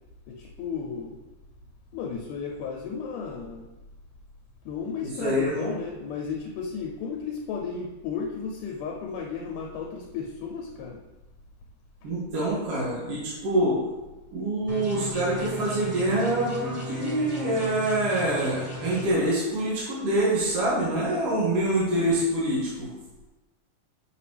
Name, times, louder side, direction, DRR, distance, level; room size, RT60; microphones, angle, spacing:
voice 1, 0.3-1.2 1.9-3.7 4.7-11.0, left 5 dB, 80° left, 0 dB, 2.1 m, -34 dB
voice 2, 5.0-5.7 12.0-13.8 14.3-22.9, right 1 dB, 50° right, -8 dB, 2.5 m, -25 dB
sound 1, 14.7-19.0, left 2 dB, 10° right, 0.7 m, -36 dB
7.4 x 5.7 x 3.3 m, 1.1 s
omnidirectional pair, 3.9 m